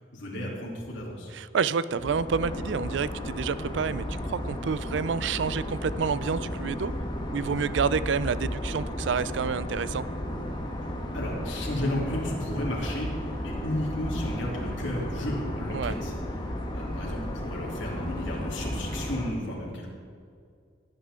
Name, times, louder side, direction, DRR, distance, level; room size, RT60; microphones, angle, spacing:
voice 1, 0.1-1.3 11.1-16.1 16.7-19.9, left 1 dB, 75° left, -4 dB, 3.0 m, -33 dB
voice 2, 1.3-6.9 7.3-10.0 15.7-15.9, right 6 dB, 70° right, 16 dB, 0.4 m, -28 dB
sound 1, 2.0-19.3, equal, 25° left, 1.2 m, -34 dB
17.5 x 9.1 x 3.8 m, 2.2 s
head